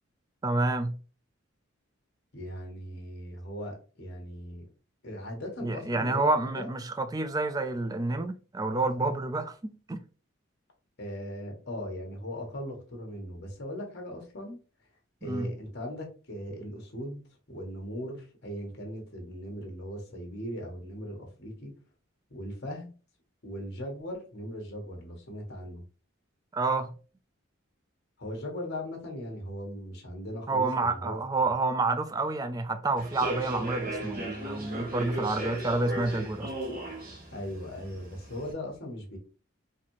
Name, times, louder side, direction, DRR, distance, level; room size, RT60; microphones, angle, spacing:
voice 1, 0.4-1.0 5.6-10.0 15.2-15.5 26.5-26.9 30.5-36.5, right 2 dB, 20° right, 0.3 m, -29 dB
voice 2, 2.3-4.6 5.0-6.7 11.0-14.6 15.2-17.2 17.5-21.7 22.3-22.9 23.4-25.8 28.2-31.2 37.3-39.2, equal, 55° left, 1.2 m, -39 dB
Human voice / Subway metro underground, 33.0-38.5, right 1 dB, 45° right, 1.2 m, -36 dB
4.0 x 2.7 x 3.0 m
head